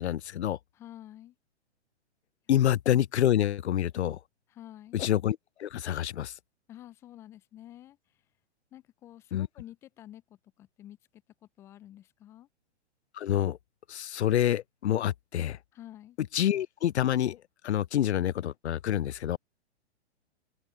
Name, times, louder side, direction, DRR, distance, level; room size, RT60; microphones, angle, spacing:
voice 1, 0.0-0.6 2.5-4.2 4.9-6.3 9.3-9.5 13.1-13.6 13.9-15.6 16.3-19.4, left 11 dB, 70° left, 0.5 m, -27 dB
voice 2, 0.7-1.4 2.5-2.7 4.5-5.1 6.7-8.2 8.7-12.5 15.7-16.2, left 13 dB, 10° left, 0.3 m, -50 dB
figure-of-eight pair, 115°, 35 cm